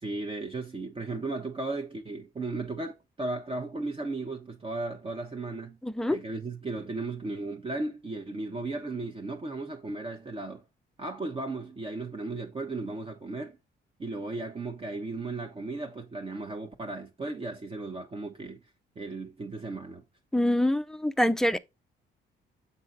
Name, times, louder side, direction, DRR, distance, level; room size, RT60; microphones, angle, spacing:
voice 1, 0.0-5.8 6.1-10.6 11.0-13.6 14.0-18.6 19.0-20.0, right 2 dB, 25° right, 0.8 m, -35 dB
voice 2, 5.8-6.2 20.3-21.6, left 1 dB, ahead, 0.4 m, -25 dB
6.7 x 3.8 x 3.9 m
cardioid pair, 90°, 20 cm